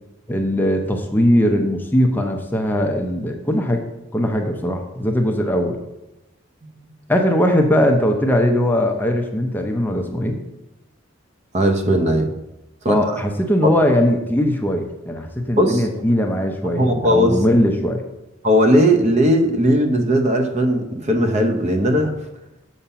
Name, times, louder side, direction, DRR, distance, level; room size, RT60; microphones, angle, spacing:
voice 1, 0.3-3.8 4.1-5.8 7.1-10.4 12.9-18.0, equal, 10° left, 3 dB, 0.6 m, -19 dB
voice 2, 11.5-12.3 12.8-13.2 13.6-13.7 15.6-15.9 16.8-17.4 18.4-22.1, equal, 35° right, 5 dB, 0.8 m, -18 dB
7.2 x 5.0 x 5.6 m, 0.93 s
head